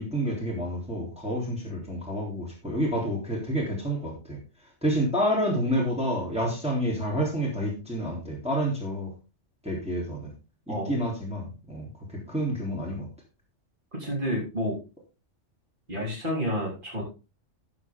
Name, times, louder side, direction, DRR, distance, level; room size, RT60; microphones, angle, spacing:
voice 1, 0.0-4.4 4.8-9.1 9.6-10.3 10.7-11.9 12.3-13.0, equal, 5° right, -3 dB, 3.5 m, -29 dB
voice 2, 10.7-11.0 13.9-14.8 15.9-17.0, equal, 40° right, -3 dB, 4.1 m, -30 dB
13.5 x 7.3 x 3.7 m, 0.30 s
omnidirectional pair, 1.3 m